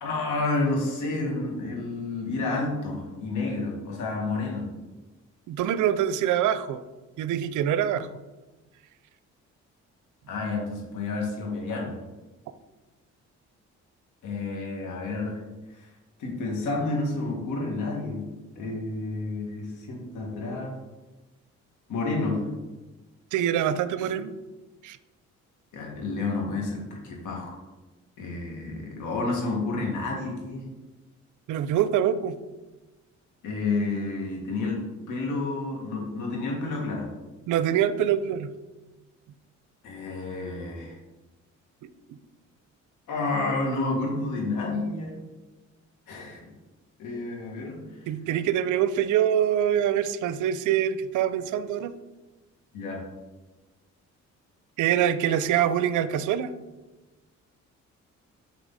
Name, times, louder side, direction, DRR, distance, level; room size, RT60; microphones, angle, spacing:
voice 1, 0.0-4.6 10.3-12.0 14.2-15.4 16.2-18.3 18.6-20.7 21.9-22.4 25.7-27.6 28.2-30.7 33.4-34.8 35.1-37.1 39.8-40.9 43.1-45.2 46.1-46.4 47.0-47.8 52.7-53.0, left 3 dB, 85° left, -1 dB, 1.9 m, -30 dB
voice 2, 5.5-6.8 7.2-8.1 23.3-24.3 24.8-25.0 31.5-32.4 37.5-38.5 48.1-52.0 54.8-56.5, right 10 dB, 80° right, 13 dB, 0.5 m, -24 dB
6.1 x 5.6 x 4.1 m, 1.1 s
cardioid pair, 90°, 30 cm